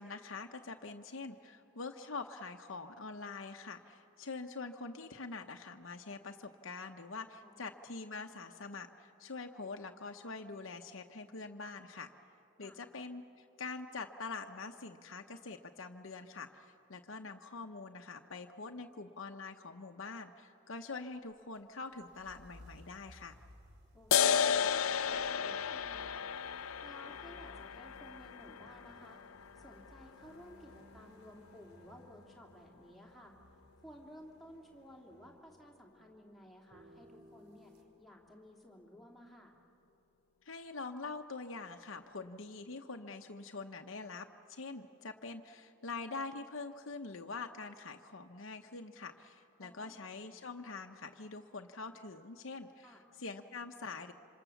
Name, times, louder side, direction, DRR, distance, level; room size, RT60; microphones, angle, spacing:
voice 1, 0.0-12.1 12.6-23.4 40.4-52.9 53.2-54.1, left 4 dB, 70° left, 4 dB, 0.9 m, -45 dB
voice 2, 7.4-7.7 12.6-12.8 23.9-26.3 26.8-29.2 29.5-33.3 33.8-39.5 49.6-50.0 52.8-53.0, equal, ahead, -1 dB, 3.0 m, -56 dB
sound 1, 21.3-37.8, equal, 50° right, 2.8 m, -60 dB
sound 2, 24.1-31.1, left 7 dB, 90° left, 0.5 m, -34 dB
26.5 x 26.0 x 7.1 m, 2.7 s
head